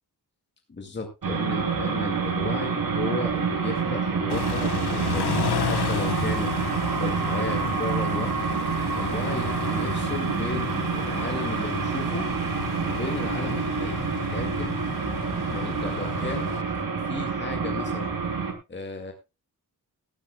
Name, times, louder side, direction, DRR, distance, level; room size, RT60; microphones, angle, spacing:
voice 1, 0.7-6.5 7.0-8.4 9.0-12.3 12.8-14.8 15.5-16.5 17.1-18.2 18.7-19.1, left 3 dB, 25° left, 4 dB, 2.0 m, -34 dB
sound 1, 1.2-18.5, right 5 dB, 60° right, 3.0 m, -27 dB
Car / Idling / Accelerating revving vroom, 4.3-16.6, left 9 dB, 75° left, 1.0 m, -33 dB
16.5 x 13.0 x 2.3 m, 0.26 s
wide cardioid pair, 170°, 39 cm